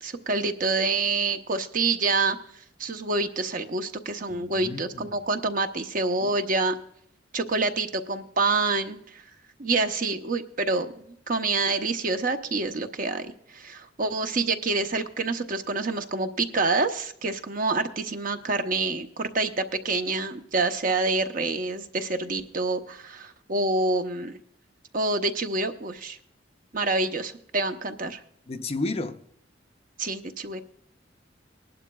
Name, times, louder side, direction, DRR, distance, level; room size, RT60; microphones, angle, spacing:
voice 1, 0.0-2.4 2.8-6.7 7.3-9.2 9.6-24.4 24.9-26.2 26.7-28.2 30.0-30.6, right 3 dB, 45° right, 0.8 m, -27 dB
voice 2, 4.3-5.2 6.2-6.3 28.5-29.2, left 2 dB, 35° left, 0.6 m, -33 dB
19.5 x 11.5 x 2.3 m
head